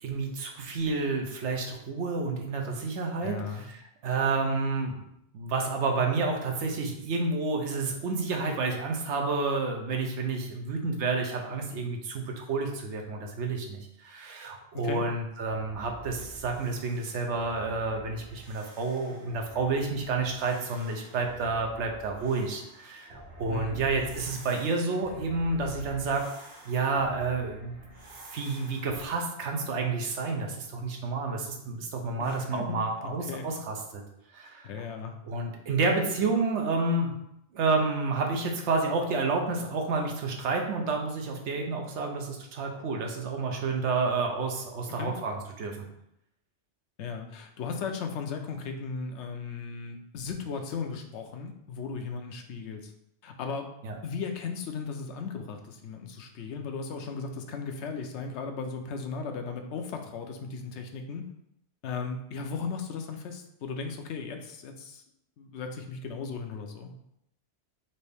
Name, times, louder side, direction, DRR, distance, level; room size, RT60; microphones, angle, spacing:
voice 1, 0.0-5.0 5.3-26.2 26.6-27.8 28.3-34.0 34.3-34.7 35.3-37.2 37.5-45.9 53.8-54.0, right 3 dB, 85° right, 2 dB, 1.0 m, -30 dB
voice 2, 3.2-3.6 14.7-15.0 23.5-23.8 32.2-33.5 34.6-35.1 44.9-45.2 47.0-52.9 53.2-53.7 54.0-61.3 61.8-65.0 65.4-66.9, left 5 dB, 80° left, 5 dB, 0.9 m, -36 dB
sound 1, 15.4-29.1, right 1 dB, 65° right, 1.1 m, -48 dB
4.2 x 2.7 x 3.3 m, 0.78 s
omnidirectional pair, 1.2 m